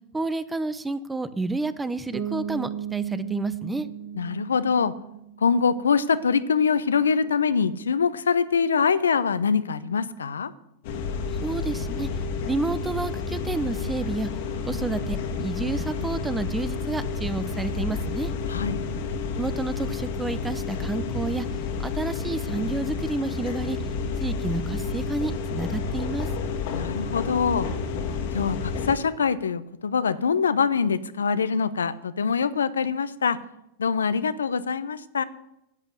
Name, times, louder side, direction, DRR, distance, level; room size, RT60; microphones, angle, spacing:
voice 1, 0.1-3.9 11.3-12.1 12.4-14.3 14.6-18.3 19.3-21.5 21.8-23.8 24.2-26.3, right 2 dB, 10° right, 14 dB, 0.8 m, -30 dB
Bass guitar, 2.1-5.8, right 8 dB, 60° right, 2.8 m, -35 dB
voice 2, 4.2-4.9 5.4-10.5 18.5-18.8 26.7-27.7 28.3-33.4 33.8-35.2, left 6 dB, 85° left, 15 dB, 0.7 m, -24 dB
sound 1, 10.8-29.0, left 4 dB, 60° left, 1.8 m, -30 dB
10.5 x 8.2 x 8.0 m, 0.86 s
hypercardioid pair, 100°, 0 cm